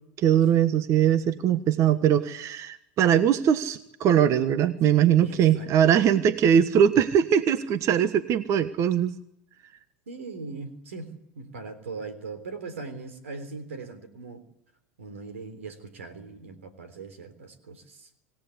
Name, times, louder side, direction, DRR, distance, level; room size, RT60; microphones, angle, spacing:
voice 1, 0.2-9.1, right 9 dB, 45° right, 12 dB, 1.3 m, -21 dB
voice 2, 5.2-5.7 10.1-14.4 15.0-18.1, right 4 dB, 90° right, 11 dB, 3.6 m, -40 dB
26.5 x 17.0 x 8.4 m, 0.79 s
hypercardioid pair, 95°, 7 cm